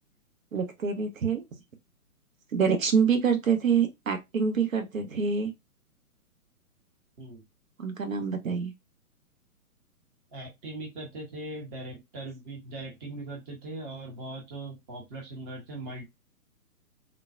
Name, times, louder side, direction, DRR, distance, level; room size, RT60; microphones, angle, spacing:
voice 1, 0.5-1.4 2.5-5.5 7.8-8.7, right 6 dB, 60° right, 0.9 m, -26 dB
voice 2, 10.3-16.0, right 2 dB, 15° right, 0.7 m, -40 dB
3.7 x 2.1 x 2.5 m
figure-of-eight pair, 130°, 45 cm